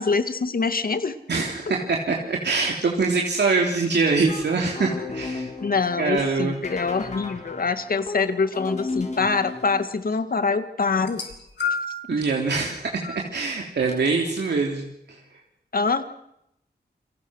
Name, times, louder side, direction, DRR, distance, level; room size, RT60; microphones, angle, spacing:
voice 1, 0.0-1.1 5.6-11.2 12.1-12.2 15.7-16.0, left 4 dB, 55° left, 10 dB, 1.9 m, -24 dB
voice 2, 1.3-5.5 6.0-6.6 12.1-15.2, right 4 dB, 80° right, 0 dB, 3.3 m, -24 dB
sound 1, 4.1-9.8, left 3 dB, 40° left, 4.4 m, -35 dB
sound 2, 11.0-12.1 13.0-13.2 14.3-14.4, left 4 dB, 90° left, 4.7 m, -29 dB
29.5 x 24.0 x 6.4 m, 0.80 s
wide cardioid pair, 110°, 17 cm